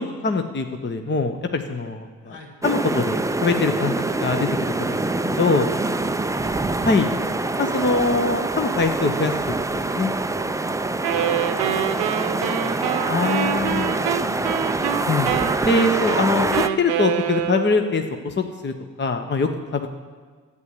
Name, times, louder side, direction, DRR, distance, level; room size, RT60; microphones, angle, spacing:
voice 1, 0.0-2.3 2.6-3.9 4.2-5.7 6.8-7.1 7.6-9.3 9.7-10.1 13.1-13.9 15.0-15.3 15.6-18.7 19.0-19.9, left 4 dB, 25° left, 6 dB, 1.0 m, -23 dB
voice 2, 2.2-2.5 6.2-6.6 11.1-15.1, left 1 dB, 75° left, -5 dB, 3.9 m, -40 dB
sound 1, 2.6-16.7, right 2 dB, 5° right, 0.5 m, -25 dB
Wind instrument woodwind instrument, 11.0-18.0, right 10 dB, 65° right, 0.9 m, -26 dB
11.0 x 8.2 x 8.4 m, 1.5 s
hypercardioid pair, 50°, 44 cm